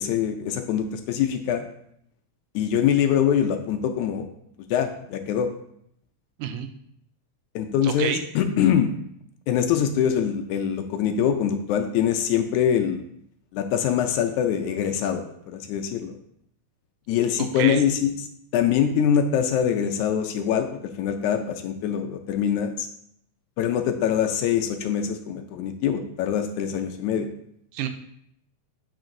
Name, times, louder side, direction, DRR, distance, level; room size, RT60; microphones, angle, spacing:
voice 1, 0.0-1.6 2.6-4.3 4.7-5.5 7.6-8.9 9.5-13.0 13.5-16.1 17.1-18.3 18.5-20.7 21.0-22.9 23.6-27.3, left 8 dB, 80° left, 6 dB, 1.9 m, -24 dB
voice 2, 7.8-8.2 17.4-17.8 27.7-27.9, right 9 dB, 90° right, 9 dB, 2.3 m, -28 dB
9.0 x 5.8 x 2.6 m, 0.72 s
omnidirectional pair, 3.7 m